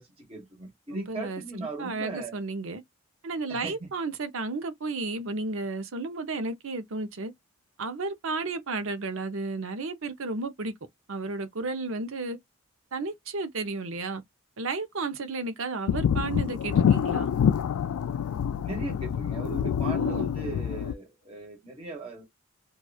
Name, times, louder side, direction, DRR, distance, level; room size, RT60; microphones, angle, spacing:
voice 1, 0.0-2.3 3.5-3.9 18.6-22.2, right 2 dB, 25° right, 1.2 m, -38 dB
voice 2, 0.9-1.4 1.8-2.8 3.2-7.3 7.8-10.7 11.1-12.4 12.9-14.2 14.6-17.3 19.9-20.3, right 3 dB, 70° right, 0.7 m, -33 dB
sound 1, 15.9-20.9, left 8 dB, 85° left, 0.3 m, -26 dB
2.9 x 2.4 x 2.3 m
head